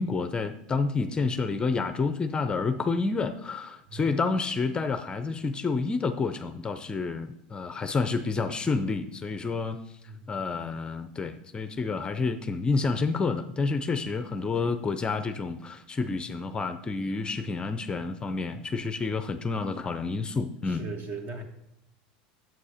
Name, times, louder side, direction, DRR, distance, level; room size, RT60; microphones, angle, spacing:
voice 1, 0.0-9.8 10.3-20.9, left 4 dB, 20° left, 0.6 m, -29 dB
voice 2, 20.7-21.4, right 3 dB, 40° right, 1.8 m, -38 dB
8.4 x 7.6 x 5.0 m
supercardioid pair, 110°, 4 cm